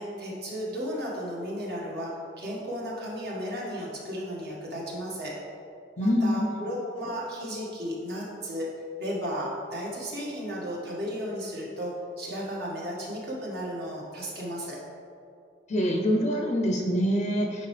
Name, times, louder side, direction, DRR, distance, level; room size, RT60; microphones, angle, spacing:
voice 1, 0.0-5.4 6.0-8.7 9.0-14.8, equal, 60° right, -4 dB, 1.6 m, -34 dB
voice 2, 6.0-6.7 15.7-17.7, equal, 40° left, 1 dB, 0.6 m, -25 dB
10.0 x 4.5 x 3.3 m, 2.5 s
head